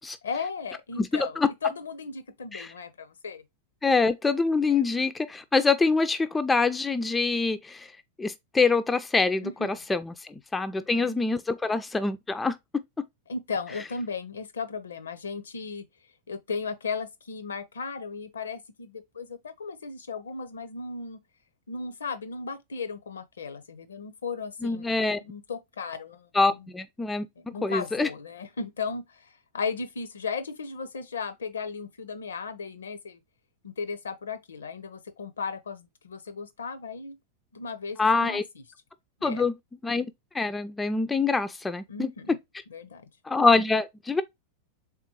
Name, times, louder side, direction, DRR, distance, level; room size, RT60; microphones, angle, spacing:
voice 1, 0.2-3.4 4.7-4.8 9.4-9.8 10.8-11.1 13.3-15.9 16.3-21.2 21.7-26.7 27.4-33.2 33.6-37.2 37.5-38.4 39.2-39.4 41.9-42.3 42.7-43.0, left 5 dB, 70° left, 0.5 m, -36 dB
voice 2, 1.0-1.5 2.5-2.7 3.8-7.9 8.2-12.6 24.6-25.2 26.3-27.3 27.6-28.1 38.0-38.4 39.2-39.6 39.8-40.1 40.3-42.1 43.3-44.2, left 4 dB, 10° left, 0.3 m, -25 dB
3.6 x 3.6 x 2.8 m
figure-of-eight pair, 90°, 0 cm